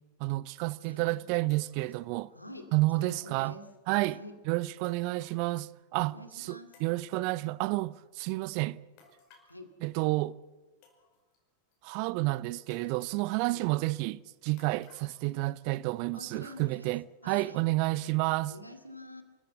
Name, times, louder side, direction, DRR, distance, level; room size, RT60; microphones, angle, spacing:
voice 1, 0.2-2.3 2.7-3.6 3.9-4.2 4.5-8.8 9.8-10.4 11.8-18.5, right 21 dB, 45° right, 0.6 m, -30 dB
sound 1, 0.7-0.8 1.5-2.1 3.1-3.9 4.8-5.8 6.0-6.1 6.7-7.5 9.0-9.6 10.4-10.5 10.8-11.4 11.7-11.8 12.7-13.3 14.6-15.3 15.6-15.7 16.6-17.1 17.6-17.7 18.3-18.4, left 4 dB, 45° left, 5.5 m, -60 dB
voice 2, 0.8-1.2 2.3-3.7 4.0-4.4 6.0-6.8 9.5-9.7 13.4-13.7 16.1-16.9 17.2-17.6 18.4-19.2, left 1 dB, 90° left, 2.4 m, -47 dB
28.5 x 14.0 x 8.3 m
figure-of-eight pair, 90°, 0 cm